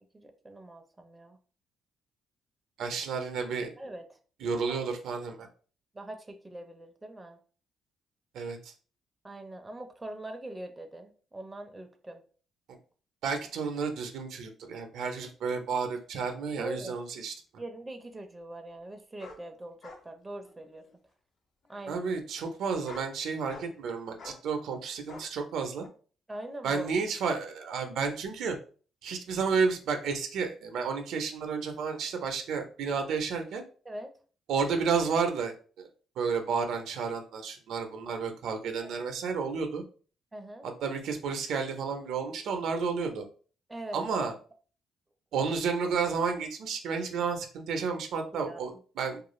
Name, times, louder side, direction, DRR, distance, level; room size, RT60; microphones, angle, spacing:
voice 1, 0.1-1.4 3.8-4.2 4.7-4.9 5.9-7.4 9.2-12.2 16.6-17.0 17.6-20.9 21.7-22.1 26.3-26.9 33.9-34.1 40.3-40.7 43.7-44.0 48.3-48.6, right 1 dB, 15° right, 5 dB, 0.5 m, -42 dB
voice 2, 2.8-3.7 4.4-5.5 8.3-8.7 13.2-17.3 21.9-25.9 26.6-28.6 29.0-33.6 34.5-35.9 36.2-39.8 40.6-43.3 43.9-44.3 45.3-49.2, right 5 dB, 80° right, 5 dB, 0.5 m, -31 dB
sound 1, 17.1-17.2 19.2-19.4 19.8-20.0 20.4-21.0 21.7-21.8 22.7-23.1 23.5-23.8 24.2-24.4 25.1-25.3 25.8-25.9, left 3 dB, 55° left, 0.6 m, -47 dB
2.4 x 2.4 x 3.0 m, 0.40 s
cardioid pair, 90°, 0 cm